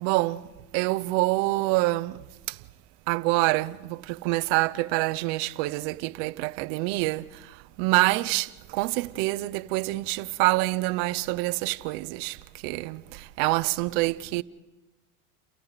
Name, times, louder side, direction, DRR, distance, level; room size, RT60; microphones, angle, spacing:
voice 1, 0.0-0.4 0.7-2.2 3.1-7.2 7.8-12.4 12.6-13.0 13.4-14.4, right 21 dB, 50° right, 0.8 m, -26 dB
30.0 x 29.0 x 4.0 m
supercardioid pair, 145°, 42 cm